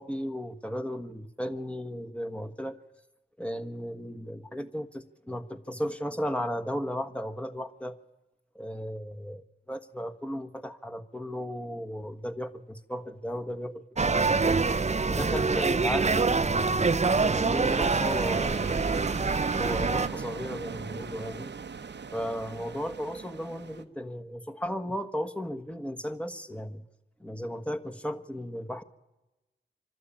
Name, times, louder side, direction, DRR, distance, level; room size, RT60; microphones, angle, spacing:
voice 1, 0.0-2.8 3.4-8.0 8.5-14.6 15.1-19.2 19.6-21.5 22.1-26.8 27.2-28.8, equal, 5° left, 5 dB, 1.5 m, -35 dB
sound 1, 14.0-20.1, right 4 dB, 35° right, 0.7 m, -25 dB
sound 2, 17.6-23.8, right 5 dB, 65° right, 1.0 m, -38 dB
25.0 x 12.5 x 8.8 m, 1.1 s
cardioid pair, 40°, 20 cm